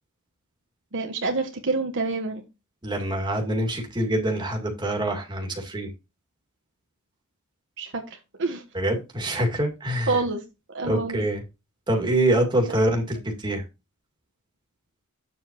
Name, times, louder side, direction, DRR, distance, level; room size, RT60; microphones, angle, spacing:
voice 1, 0.9-2.4 7.8-8.6 10.1-10.4 10.7-11.2 12.7-12.8, right 3 dB, 60° right, 1.3 m, -27 dB
voice 2, 2.8-5.9 8.7-10.2 10.8-11.4 11.9-13.6, right 1 dB, 20° right, 2.2 m, -25 dB
8.5 x 7.3 x 3.0 m
head